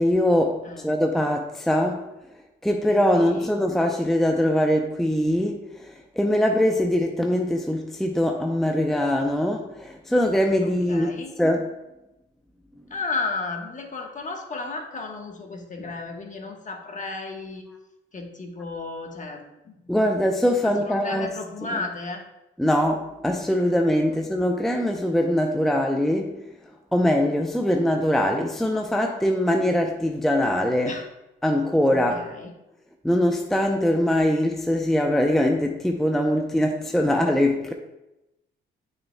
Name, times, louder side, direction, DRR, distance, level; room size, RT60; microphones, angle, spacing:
voice 1, 0.0-2.0 2.6-5.9 6.2-11.7 19.9-21.3 21.6-21.8 22.6-26.4 26.9-31.0 31.4-32.2 33.0-37.7, left 1 dB, ahead, 3 dB, 0.6 m, -22 dB
voice 2, 10.9-11.3 12.9-17.6 18.1-19.4 20.8-22.2 30.9-31.0 31.9-32.5, left 3 dB, 35° left, 2 dB, 1.2 m, -33 dB
8.6 x 6.3 x 2.2 m, 0.94 s
cardioid pair, 80°, 21 cm